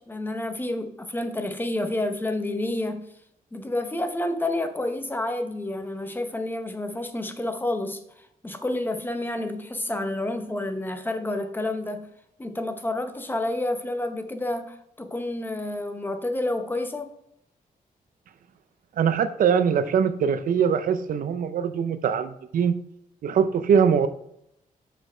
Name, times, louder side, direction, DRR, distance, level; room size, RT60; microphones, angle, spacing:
voice 1, 0.0-3.1 3.5-12.1 12.4-17.2, left 1 dB, 15° left, 0.7 m, -29 dB
voice 2, 19.0-22.8 23.2-24.1, right 7 dB, 70° right, 0.5 m, -22 dB
6.4 x 5.1 x 4.3 m
wide cardioid pair, 130°, 15 cm